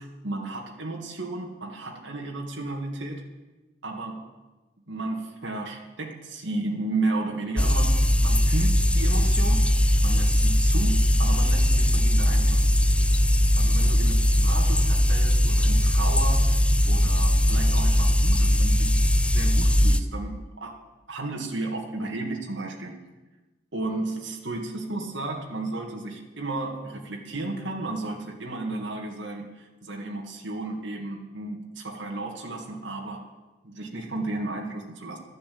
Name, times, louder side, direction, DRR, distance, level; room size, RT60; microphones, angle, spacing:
voice 1, 0.0-3.2 3.8-4.3 4.9-12.7 13.6-18.9 19.2-20.8 21.1-23.0 23.7-33.3 33.6-35.2, right 2 dB, 75° right, 0 dB, 2.1 m, -33 dB
sound 1, 7.6-20.0, equal, 5° left, 0.5 m, -20 dB
12.5 x 10.0 x 8.6 m, 1.1 s
head